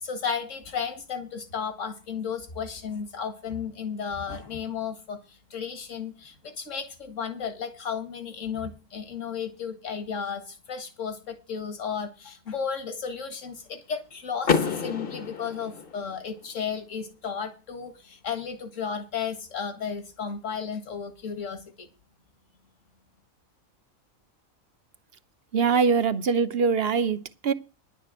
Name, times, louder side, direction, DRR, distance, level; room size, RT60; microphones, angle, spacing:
voice 1, 0.0-21.9, left 6 dB, 60° left, 2.1 m, -34 dB
Car / Door, 14.4-16.4, left 6 dB, 45° left, 1.2 m, -28 dB
voice 2, 25.5-27.5, right 5 dB, 50° right, 0.9 m, -23 dB
10.5 x 6.6 x 8.0 m
omnidirectional pair, 1.5 m